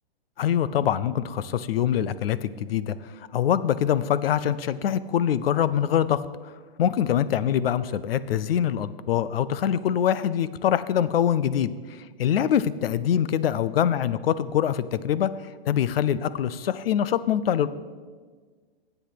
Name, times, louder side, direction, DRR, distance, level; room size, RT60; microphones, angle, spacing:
voice 1, 0.4-3.0 3.3-6.3 6.8-11.7 12.2-15.3 15.7-17.7, left 9 dB, 65° left, 16 dB, 0.6 m, -24 dB
10.0 x 8.0 x 5.8 m, 1.5 s
hypercardioid pair, 175°, 31 cm